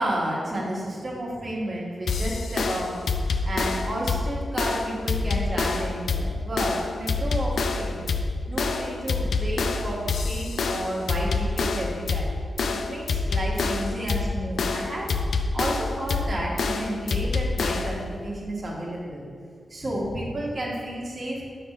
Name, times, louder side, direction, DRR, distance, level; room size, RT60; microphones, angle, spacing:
voice 1, 0.0-2.9 3.4-8.1 8.5-12.3 12.7-15.1 15.5-19.3 19.7-21.4, right 1 dB, 40° right, -5 dB, 1.3 m, -31 dB
sound 1, 2.1-18.0, left 4 dB, 80° left, 0.3 m, -27 dB
5.9 x 3.4 x 5.4 m, 2.1 s
cardioid pair, 75°, 0 cm